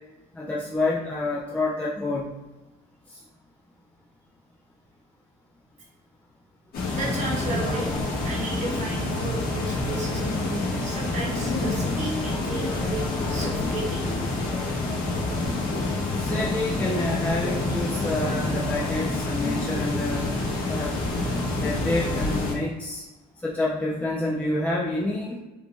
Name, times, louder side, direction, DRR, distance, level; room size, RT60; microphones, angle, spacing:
voice 1, 0.3-2.3 16.1-20.3 20.7-21.0 21.6-23.0 23.4-25.4, left 2 dB, 10° left, -5 dB, 0.4 m, -28 dB
sound 1, 6.7-22.5, left 2 dB, 65° left, 1.3 m, -27 dB
voice 2, 7.0-8.0 8.2-13.0 13.3-14.2, right 2 dB, 45° right, -2 dB, 1.1 m, -33 dB
3.5 x 2.5 x 3.0 m, 1.1 s
cardioid pair, 110°, 17 cm